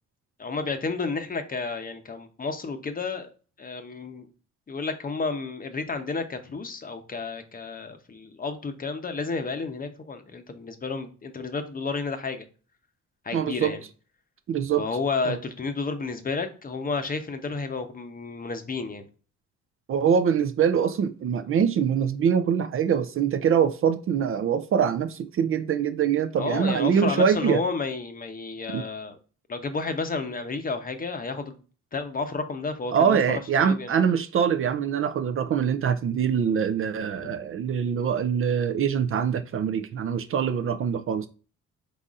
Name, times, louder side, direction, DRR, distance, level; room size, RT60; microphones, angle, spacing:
voice 1, 0.4-3.3 3.6-4.3 4.7-12.5 13.2-13.8 14.8-19.1 26.4-29.2 29.5-31.6 31.9-33.9 37.2-37.3, left 4 dB, 30° left, 0.7 m, -31 dB
voice 2, 13.3-13.7 14.5-14.8 15.3-15.4 19.9-27.6 28.7-28.8 32.9-41.3, right 7 dB, 45° right, 0.4 m, -24 dB
4.0 x 3.9 x 2.4 m
cardioid pair, 90°, 30 cm